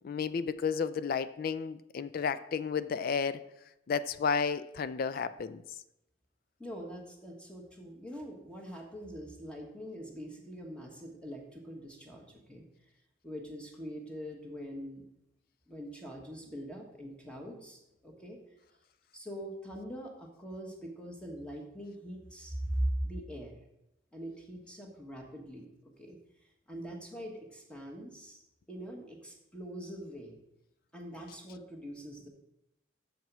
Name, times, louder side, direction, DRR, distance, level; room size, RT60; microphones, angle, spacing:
voice 1, 0.0-3.4 3.9-5.6, left 6 dB, 50° left, 15 dB, 0.3 m, -32 dB
voice 2, 6.6-12.6 13.2-15.0 15.7-18.4 19.1-23.5 24.1-26.2 26.7-28.4 28.7-30.4 30.9-32.3, equal, 5° left, 0 dB, 1.3 m, -42 dB
6.7 x 4.7 x 6.0 m, 0.87 s
head